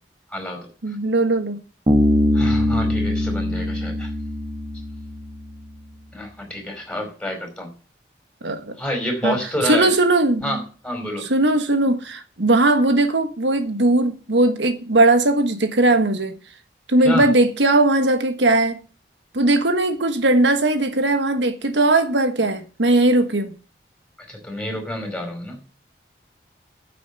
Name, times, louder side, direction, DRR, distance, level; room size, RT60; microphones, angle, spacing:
voice 1, 0.3-0.7 2.3-4.1 6.1-7.7 8.8-9.9 10.4-11.3 17.0-17.3 24.3-25.6, left 1 dB, 5° left, 5.0 m, -28 dB
voice 2, 0.8-1.6 8.4-8.8 9.2-9.4 9.6-10.6 11.2-16.3 16.9-18.8 19.3-23.6, right 2 dB, 85° right, 1.5 m, -19 dB
Bass guitar, 1.9-5.4, left 1 dB, 35° right, 1.9 m, -21 dB
9.9 x 8.4 x 7.9 m
head